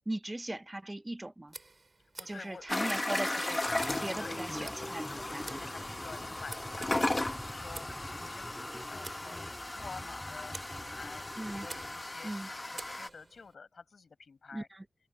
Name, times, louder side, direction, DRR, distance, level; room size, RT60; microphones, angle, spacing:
voice 1, 0.0-1.5 2.3-3.7 4.0-5.4 11.4-11.7 12.2-12.5 14.5-14.8, right 1 dB, 20° right, 0.6 m, -39 dB
Tick, 1.5-13.5, right 3 dB, 45° right, 3.2 m, -52 dB
voice 2, 2.2-2.7 4.2-7.0 7.4-7.9 8.2-8.5 8.9-11.3 11.6-14.7, left 5 dB, 75° left, 4.8 m, -49 dB
sound 1, 2.7-13.1, left 2 dB, 25° left, 1.0 m, -36 dB
sound 2, 3.6-12.2, equal, ahead, 3.1 m, -45 dB
wide cardioid pair, 65°, 0 cm